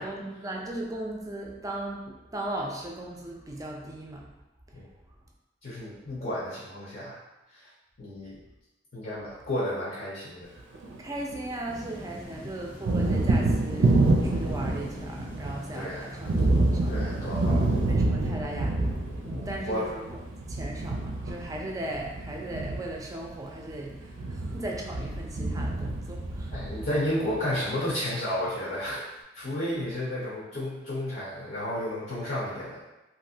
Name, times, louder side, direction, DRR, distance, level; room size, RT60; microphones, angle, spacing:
voice 1, 0.0-4.3 4.7-4.8 11.0-17.3 17.8-19.1 19.4-20.0 20.5-26.6, right 1 dB, 20° right, -1 dB, 0.4 m, -37 dB
voice 2, 5.6-7.2 7.5-7.7 8.0-8.4 8.9-10.5 15.7-16.2 16.9-17.7 19.2-19.9 26.5-29.1 29.3-32.8, left 1 dB, 50° left, -7 dB, 0.7 m, -32 dB
Thunder, 10.6-11.8 12.1-27.3, right 2 dB, 85° right, 0.5 m, -27 dB
sound 1, 11.7-17.9, equal, 80° left, 1.2 m, -42 dB
3.0 x 2.5 x 2.7 m, 1.0 s
head